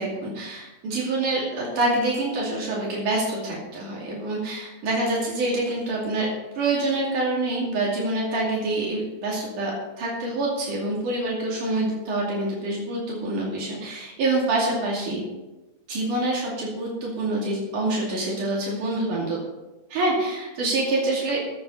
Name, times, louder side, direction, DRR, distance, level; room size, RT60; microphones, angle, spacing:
voice 1, 0.0-6.3 6.6-9.7 10.0-15.2 15.9-19.4 19.9-21.4, right 2 dB, 90° right, -4 dB, 4.1 m, -26 dB
15.5 x 7.9 x 5.4 m, 1.1 s
omnidirectional pair, 3.5 m